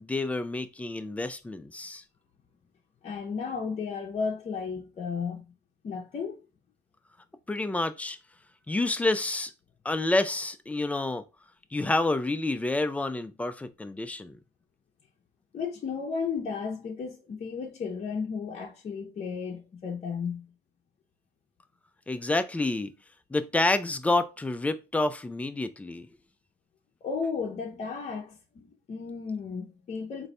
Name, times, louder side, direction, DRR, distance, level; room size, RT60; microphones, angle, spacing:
voice 1, 0.0-2.0 7.5-8.2 8.7-9.5 9.9-11.2 11.7-14.4 22.1-22.9 23.3-26.1, left 2 dB, 10° left, 0.4 m, -28 dB
voice 2, 3.0-5.4 5.8-6.4 15.5-20.5 27.0-30.3, left 5 dB, 40° left, 0.7 m, -34 dB
3.9 x 2.6 x 3.2 m
cardioid pair, 110°, 17 cm